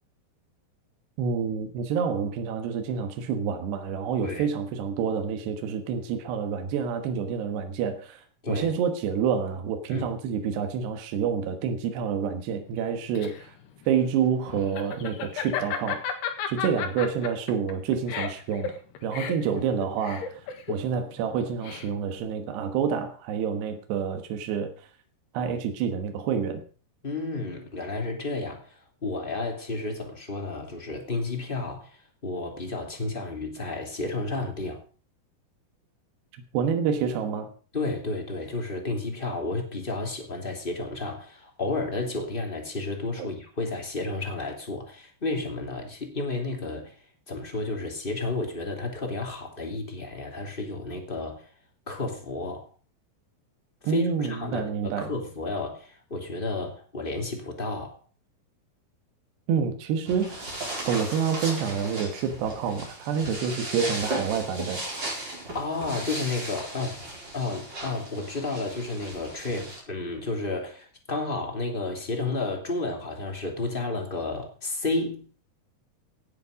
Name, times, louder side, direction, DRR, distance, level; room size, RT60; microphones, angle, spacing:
voice 1, 1.2-8.2 8.5-13.6 13.9-16.0 16.5-18.8 19.0-20.3 20.7-24.7 25.4-26.6 36.5-37.5 43.2-43.3 53.9-55.1 59.5-60.5 60.9-64.8, right 7 dB, 85° right, 3.5 m, -28 dB
Laughter, 12.8-22.2, left 8 dB, 85° left, 3.8 m, -34 dB
voice 2, 27.0-34.8 37.7-46.9 47.3-51.5 51.9-52.7 53.8-58.0 65.5-75.2, left 2 dB, 15° left, 2.2 m, -32 dB
sound 1, 60.0-69.8, right 2 dB, 25° right, 4.9 m, -36 dB
17.0 x 8.4 x 5.2 m
omnidirectional pair, 4.7 m